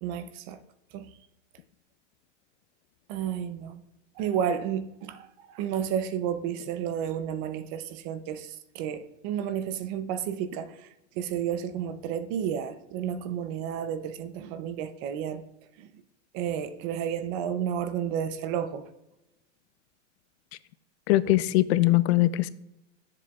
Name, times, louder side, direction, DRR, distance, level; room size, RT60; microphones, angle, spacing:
voice 1, 0.0-0.6 0.9-1.2 3.1-3.8 4.2-10.9 11.2-15.4 15.8-15.9 16.3-18.9 21.3-21.4, right 9 dB, 45° right, 0.6 m, -31 dB
voice 2, 21.1-22.5, left 17 dB, 65° left, 0.5 m, -21 dB
10.0 x 7.5 x 2.4 m
supercardioid pair, 140°, 35 cm